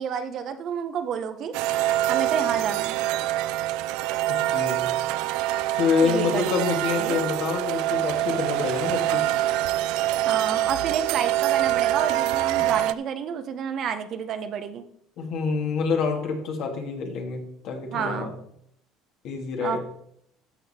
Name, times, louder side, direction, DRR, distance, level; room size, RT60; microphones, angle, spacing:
voice 1, 0.0-1.5 2.1-3.0 6.0-6.5 7.0-7.2 10.2-14.8 17.9-18.3 19.6-19.8, right 7 dB, 55° right, 9 dB, 1.1 m, -30 dB
sound 1, 1.5-12.9, right 14 dB, 75° right, 0.4 m, -25 dB
voice 2, 4.3-4.9 5.7-9.3 12.6-12.7 15.2-18.3 19.2-19.8, left 5 dB, 65° left, 2 dB, 2.4 m, -27 dB
13.0 x 6.4 x 4.4 m, 0.73 s
supercardioid pair, 95°, 0 cm